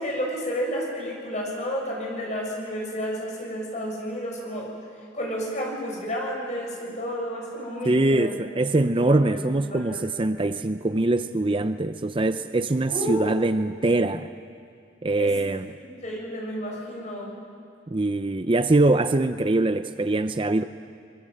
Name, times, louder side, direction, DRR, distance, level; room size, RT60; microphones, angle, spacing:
voice 1, 0.0-4.7 5.1-8.4 9.0-9.4 9.7-10.0 12.9-13.2 15.2-15.3 15.8-17.3, equal, 40° left, -1 dB, 6.8 m, -31 dB
voice 2, 7.8-14.3 15.0-15.7 17.9-20.6, right 2 dB, 30° right, 10 dB, 0.6 m, -23 dB
23.5 x 23.0 x 8.0 m, 2.4 s
head